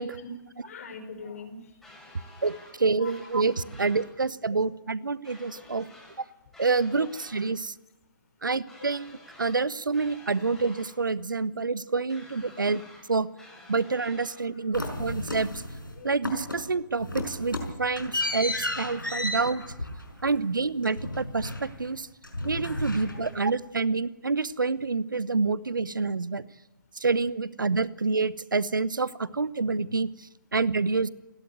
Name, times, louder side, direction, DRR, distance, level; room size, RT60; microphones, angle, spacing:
voice 1, 0.2-1.8 2.9-3.3 6.5-6.6 7.0-7.1 8.4-8.5 10.0-10.1 12.4-12.5 14.5-14.9 15.8-16.3 22.8-23.3, left 4 dB, 45° left, 7 dB, 5.4 m, -44 dB
sound 1, 1.8-2.7 3.0-4.1 5.2-6.2 6.5-7.5 8.7-9.6 9.9-10.9 12.1-13.0 13.4-14.4, left 1 dB, ahead, 7.8 m, -51 dB
voice 2, 2.4-5.8 6.2-6.3 6.6-7.7 8.4-12.8 13.1-13.3 13.7-15.5 16.0-19.6 20.2-22.1 22.4-26.4 27.0-30.1 30.5-31.1, right 4 dB, 75° right, 19 dB, 0.9 m, -27 dB
sound 2, 14.7-15.9 16.2-16.7 17.0-22.0 22.2-23.5, left 1 dB, 90° left, 5.3 m, -33 dB
29.5 x 12.5 x 9.5 m, 1.0 s
figure-of-eight pair, 135°, 11 cm